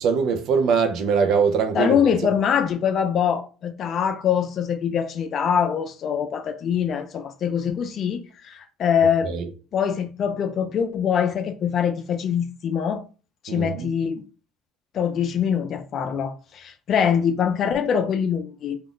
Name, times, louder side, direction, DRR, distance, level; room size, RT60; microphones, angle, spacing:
voice 1, 0.0-2.0 9.2-9.4 13.5-13.9, right 6 dB, 65° right, 0.5 m, -22 dB
voice 2, 1.7-9.3 9.7-13.0 13.4-14.2 14.9-18.8, left 7 dB, 50° left, 0.4 m, -23 dB
2.3 x 2.0 x 3.6 m
supercardioid pair, 90°, 0 cm